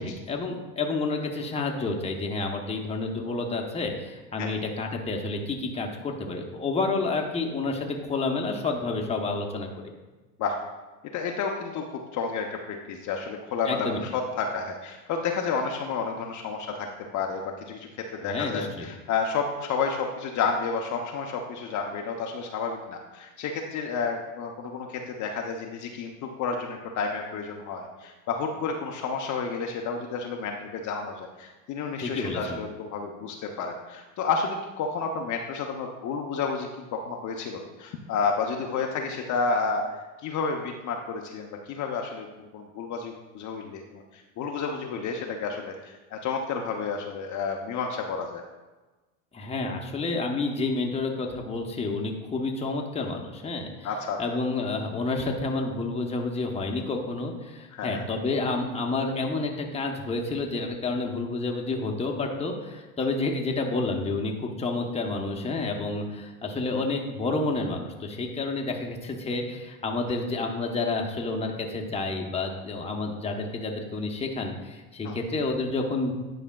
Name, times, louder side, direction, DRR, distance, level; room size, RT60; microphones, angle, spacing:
voice 1, 0.0-9.7 13.6-14.0 18.2-18.9 32.0-32.6 49.3-53.9 54.2-76.1, left 3 dB, 15° left, 2 dB, 0.9 m, -29 dB
voice 2, 11.1-16.9 17.1-42.3 42.5-48.4 53.8-54.2 57.7-58.0 75.0-75.2, left 5 dB, 40° left, 2 dB, 0.7 m, -31 dB
9.9 x 4.9 x 2.3 m, 1.2 s
hypercardioid pair, 95°, 44 cm